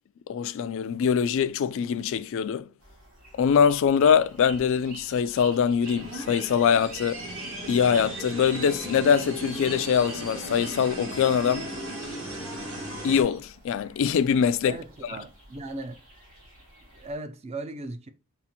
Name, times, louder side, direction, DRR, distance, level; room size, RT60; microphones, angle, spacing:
voice 1, 0.3-2.7 3.4-7.3 7.7-11.7 13.0-14.8, left 7 dB, 60° left, 0.3 m, -23 dB
sound 1, 2.8-17.2, right 2 dB, 85° right, 2.3 m, -48 dB
sound 2, 5.8-13.2, right 1 dB, 60° right, 1.8 m, -36 dB
voice 2, 14.7-16.0 16.9-18.1, right 2 dB, 30° right, 0.4 m, -37 dB
5.4 x 2.5 x 2.8 m
head